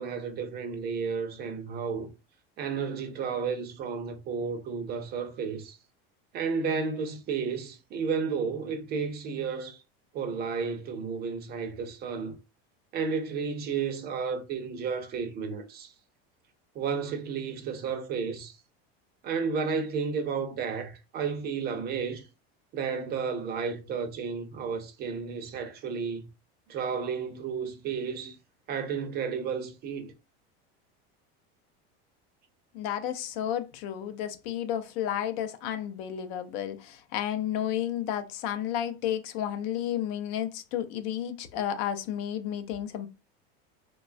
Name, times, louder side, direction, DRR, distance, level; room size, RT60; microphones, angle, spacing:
voice 1, 0.0-2.1 2.6-5.8 6.3-9.8 10.1-12.3 12.9-15.9 16.8-18.6 19.2-22.3 22.7-26.3 26.7-28.4 28.7-30.1, right 5 dB, 35° right, 0.4 m, -32 dB
voice 2, 32.7-43.1, left 10 dB, 75° left, 0.5 m, -32 dB
3.1 x 2.2 x 2.5 m
supercardioid pair, 140°, 31 cm